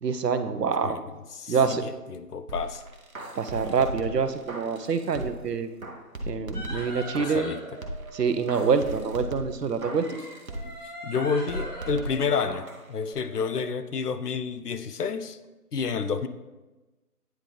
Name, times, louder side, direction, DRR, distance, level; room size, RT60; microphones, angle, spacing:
voice 1, 0.0-1.0 1.5-1.8 3.4-5.7 6.3-7.5 8.1-10.2, right 5 dB, 90° right, 10 dB, 0.7 m, -26 dB
voice 2, 1.3-2.8 7.2-7.6 10.6-10.7 11.0-15.4 15.7-16.3, left 5 dB, 75° left, 11 dB, 0.6 m, -29 dB
sound 1, 2.5-5.5 5.8-7.5 7.8-10.8 11.1-12.8 13.1-13.2, right 1 dB, 60° right, 1.0 m, -38 dB
sound 2, 6.5-9.2 9.9-13.7, right 1 dB, 25° left, 1.2 m, -41 dB
9.0 x 3.8 x 3.3 m, 1.1 s
figure-of-eight pair, 175°, 47 cm